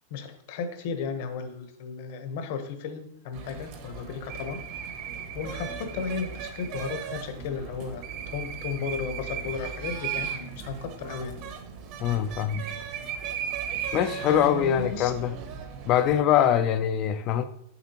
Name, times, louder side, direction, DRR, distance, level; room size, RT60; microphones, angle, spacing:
voice 1, 0.1-4.6 5.3-11.4 14.3-15.1, left 5 dB, 50° left, 0.9 m, -34 dB
sound 1, 3.3-16.2, right 7 dB, 40° right, 0.8 m, -36 dB
voice 2, 12.0-12.6 13.9-15.3 15.9-17.4, left 10 dB, 30° left, 0.3 m, -23 dB
6.8 x 6.0 x 2.8 m
supercardioid pair, 170°, 0 cm